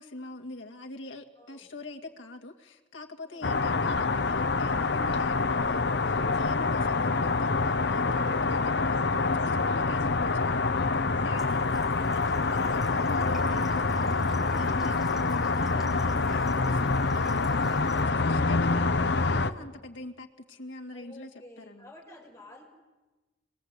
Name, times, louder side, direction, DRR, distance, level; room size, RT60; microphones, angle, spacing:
voice 1, 0.0-17.8 18.1-21.3 21.6-21.9, left 1 dB, 90° left, 4 dB, 2.1 m, -43 dB
voice 2, 1.4-1.7 3.3-3.5 19.4-19.8 20.9-22.6, left 1 dB, 15° left, -1 dB, 5.7 m, -52 dB
sound 1, 3.4-19.5, left 3 dB, 60° left, 0.9 m, -26 dB
Water tap faucet, 11.4-18.1, left 1 dB, ahead, 4.5 m, -51 dB
26.0 x 21.0 x 8.2 m, 1.2 s
head